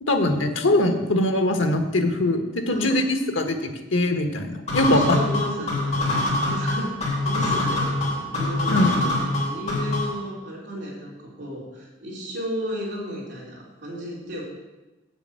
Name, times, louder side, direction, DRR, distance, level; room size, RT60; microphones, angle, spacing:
voice 1, 0.0-5.2 8.7-9.0, left 1 dB, 85° left, 6 dB, 1.3 m, -22 dB
voice 2, 2.7-3.0 4.9-14.4, equal, 60° right, -5 dB, 3.4 m, -33 dB
sound 1, 4.7-10.2, left 2 dB, 35° left, 3.2 m, -24 dB
8.1 x 6.9 x 7.5 m, 1.1 s
head